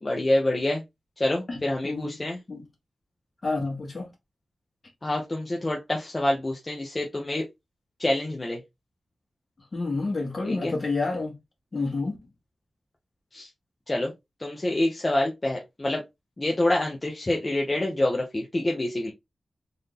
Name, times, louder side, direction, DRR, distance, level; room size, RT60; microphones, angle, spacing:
voice 1, 0.0-0.8 1.2-2.4 5.0-7.4 8.0-8.6 10.4-10.7 13.3-13.5 13.9-14.1 14.4-16.0 16.4-19.1, left 1 dB, 25° left, 0.8 m, -26 dB
voice 2, 1.8-2.6 3.4-4.1 9.7-11.3 11.7-12.2, left 3 dB, 45° left, 1.7 m, -29 dB
3.9 x 2.6 x 3.4 m
wide cardioid pair, 120°, 0 cm